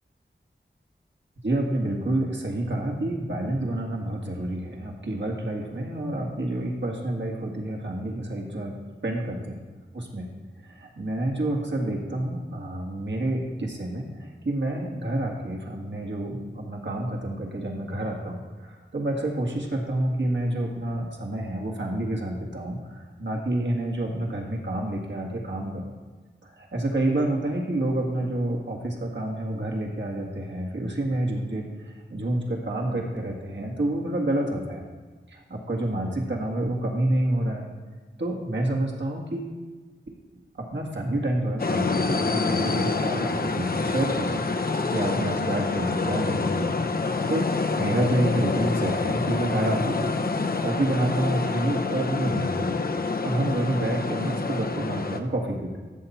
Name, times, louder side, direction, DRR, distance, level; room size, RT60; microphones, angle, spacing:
voice 1, 1.4-8.8 9.0-9.6 9.9-10.3 10.6-25.9 26.4-34.8 35.3-37.7 38.2-39.6 40.6-44.4 44.9-46.8 47.3-47.5 47.8-50.2 50.6-52.8 53.2-55.8, right 1 dB, 65° right, -1 dB, 1.9 m, -28 dB
sound 1, 41.6-55.2, left 4 dB, 50° left, 0.6 m, -27 dB
13.0 x 7.0 x 4.3 m, 1.4 s
wide cardioid pair, 70°, 20 cm